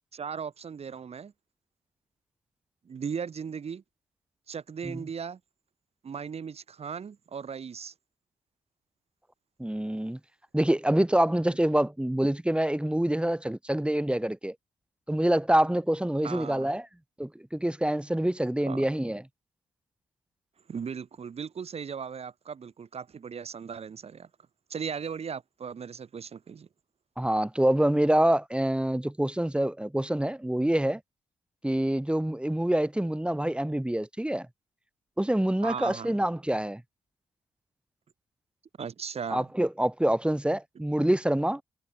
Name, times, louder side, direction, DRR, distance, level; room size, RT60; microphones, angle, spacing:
voice 1, 0.1-1.3 2.9-3.8 4.5-5.4 6.0-7.9 16.2-16.7 18.7-18.9 20.7-24.3 24.7-26.7 35.6-36.1 38.8-39.5, right 6 dB, 55° right, 3.8 m, -37 dB
voice 2, 9.6-10.2 10.5-14.5 15.1-16.9 17.2-19.2 27.2-31.0 31.6-34.5 35.2-36.8 39.3-41.6, right 1 dB, 10° right, 3.2 m, -26 dB
hypercardioid pair, 45°, 13 cm